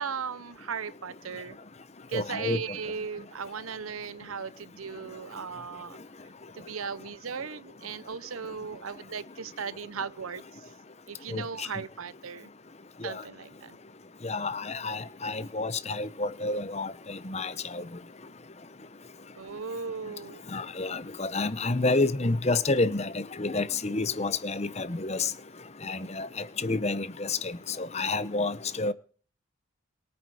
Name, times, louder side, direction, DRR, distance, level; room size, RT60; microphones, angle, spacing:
voice 1, 0.0-1.6 2.1-6.0 6.5-10.7 11.1-12.5 13.0-13.8 19.4-20.4, right 6 dB, 85° right, 0.8 m, -37 dB
voice 2, 2.1-2.6 11.3-11.4 14.2-17.8 20.5-25.3 25.9-26.3 26.6-27.5 27.8-28.9, left 3 dB, 30° left, 0.9 m, -29 dB
23.0 x 8.7 x 4.9 m
head